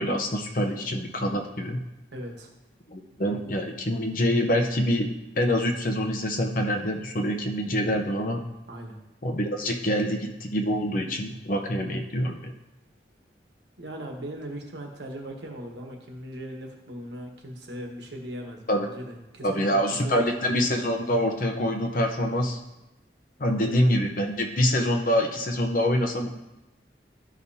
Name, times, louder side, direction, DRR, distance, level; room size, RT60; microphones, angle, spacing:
voice 1, 0.0-1.8 2.9-5.1 5.4-8.4 9.2-12.5 18.7-18.9 19.4-22.6 23.4-26.3, equal, 50° left, 3 dB, 0.8 m, -25 dB
voice 2, 2.1-2.5 8.7-9.0 13.8-19.6 20.0-20.3 23.5-23.8, equal, 80° right, 2 dB, 1.3 m, -39 dB
12.5 x 5.1 x 2.8 m, 0.96 s
head